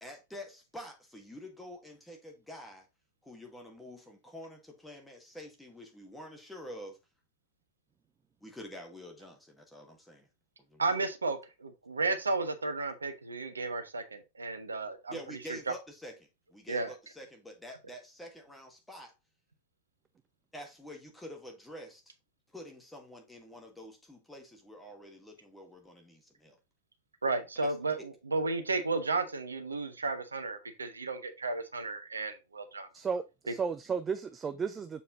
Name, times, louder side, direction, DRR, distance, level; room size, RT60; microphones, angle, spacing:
voice 1, 0.0-2.9 3.2-7.0 8.4-10.3 10.6-10.8 15.1-16.2 16.5-19.1 20.5-22.1 22.5-26.6 27.6-27.7, equal, 5° left, 1.9 m, -47 dB
voice 2, 10.8-15.7 16.7-16.9 27.2-32.9 33.5-33.6, right 3 dB, 75° right, 1.0 m, -33 dB
voice 3, 32.9-35.0, right 5 dB, 20° right, 0.5 m, -34 dB
7.1 x 4.3 x 3.8 m
figure-of-eight pair, 90°, 0 cm